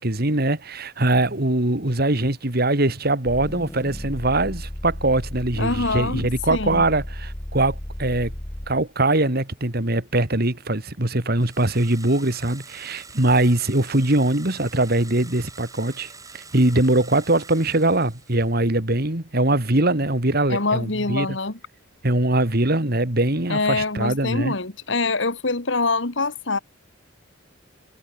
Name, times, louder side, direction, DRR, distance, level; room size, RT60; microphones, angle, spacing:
voice 1, 0.0-8.3 8.7-21.4 22.0-24.5, right 2 dB, 50° right, 2.7 m, -22 dB
sound 1, 3.3-8.9, equal, 15° left, 1.2 m, -34 dB
voice 2, 5.6-6.8 20.5-21.6 23.5-26.6, left 3 dB, 65° left, 1.9 m, -25 dB
sound 2, 11.4-18.7, right 4 dB, 15° right, 6.9 m, -45 dB
head